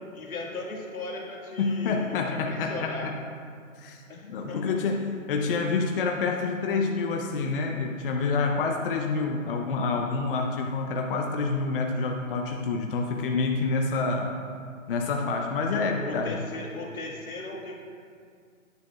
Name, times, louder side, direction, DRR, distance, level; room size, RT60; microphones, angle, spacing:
voice 1, 0.1-3.1 4.1-4.6 15.7-17.8, left 2 dB, 85° left, -2 dB, 2.0 m, -37 dB
voice 2, 1.6-3.2 3.8-4.0 4.3-14.3 14.9-16.4, left 4 dB, 40° left, 2 dB, 0.7 m, -27 dB
10.5 x 9.7 x 2.3 m, 2.2 s
hypercardioid pair, 145°, 41 cm